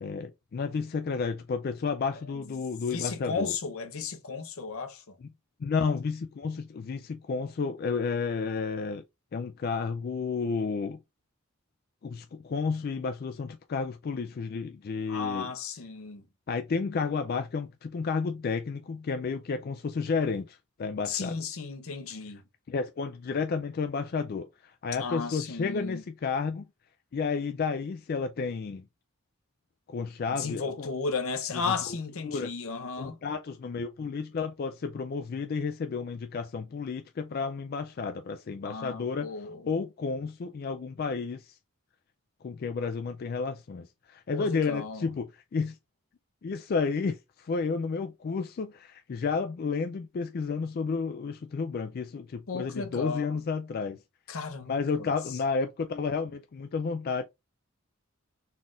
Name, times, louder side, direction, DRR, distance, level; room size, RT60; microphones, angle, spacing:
voice 1, 0.0-3.5 5.2-5.3 5.6-9.0 9.3-11.0 12.0-15.5 16.5-21.4 22.7-26.6 27.1-28.9 29.9-30.9 31.5-31.7 32.2-32.5 33.0-39.3 39.7-41.5 42.4-45.8 46.4-54.0 54.7-57.2, left 5 dB, 45° left, 0.3 m, -31 dB
voice 2, 2.9-5.0 15.1-16.2 21.1-22.4 24.9-26.0 30.3-33.2 38.6-39.7 44.3-45.1 52.5-53.4 54.3-55.1, left 4 dB, 75° left, 0.7 m, -34 dB
4.2 x 2.4 x 3.7 m
head